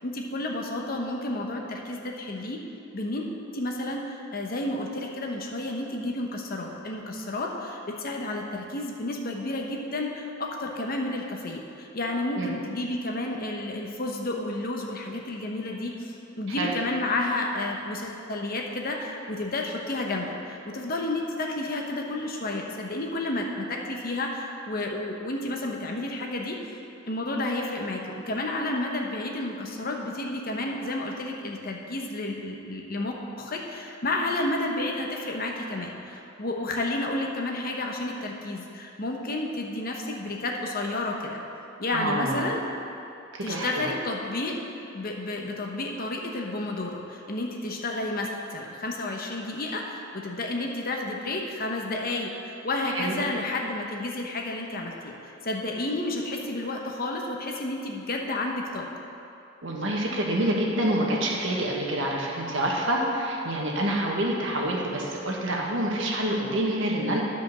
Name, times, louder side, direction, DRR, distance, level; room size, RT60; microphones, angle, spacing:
voice 1, 0.0-2.6 2.9-3.3 3.5-26.6 27.1-41.4 41.8-42.6 43.4-44.6 44.9-58.9, left 2 dB, 50° left, 1 dB, 1.1 m, -31 dB
voice 2, 41.9-42.5 43.3-43.9 52.9-53.2 59.6-67.2, right 1 dB, 70° right, -2 dB, 1.5 m, -27 dB
11.0 x 5.2 x 6.8 m, 2.7 s
head